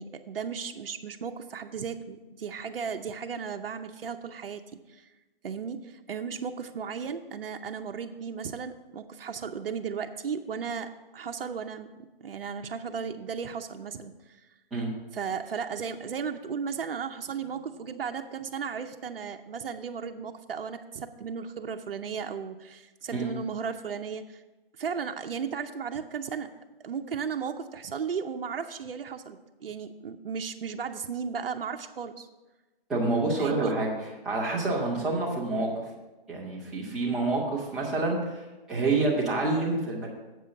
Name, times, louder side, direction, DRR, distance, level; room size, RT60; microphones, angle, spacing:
voice 1, 0.0-5.1 5.4-14.5 15.1-24.4 24.8-26.5 26.8-32.3 33.4-33.7 38.8-39.0, right 6 dB, 75° right, 6 dB, 0.7 m, -35 dB
voice 2, 32.9-33.9 34.2-35.7 36.3-40.1, right 3 dB, ahead, -9 dB, 0.5 m, -27 dB
7.6 x 5.6 x 6.9 m, 1.1 s
hypercardioid pair, 160°, 29 cm